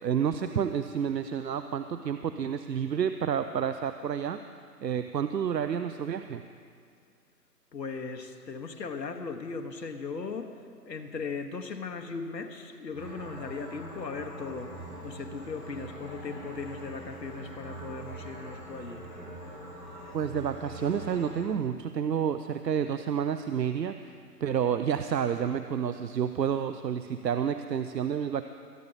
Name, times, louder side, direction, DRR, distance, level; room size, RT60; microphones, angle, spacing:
voice 1, 0.0-4.4 4.8-6.4 20.1-28.4, right 8 dB, 80° right, 10 dB, 0.7 m, -30 dB
voice 2, 7.7-10.5 10.8-19.1, left 4 dB, 80° left, 5 dB, 1.4 m, -38 dB
sound 1, 12.9-21.4, right 1 dB, ahead, 1.6 m, -43 dB
22.5 x 10.0 x 4.1 m, 2.2 s
hypercardioid pair, 170°, 49 cm